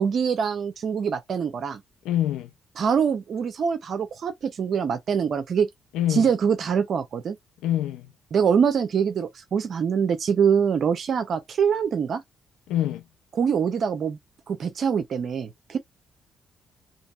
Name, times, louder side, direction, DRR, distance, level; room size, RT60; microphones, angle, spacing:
voice 1, 0.0-1.8 2.8-5.7 6.1-7.4 8.3-12.2 13.4-14.2 14.5-15.8, right 7 dB, 60° right, 0.5 m, -24 dB
voice 2, 2.0-2.5 5.9-6.3 7.6-8.1 12.7-13.0, left 12 dB, 90° left, 0.4 m, -25 dB
2.9 x 2.7 x 2.3 m
supercardioid pair, 60°, 0 cm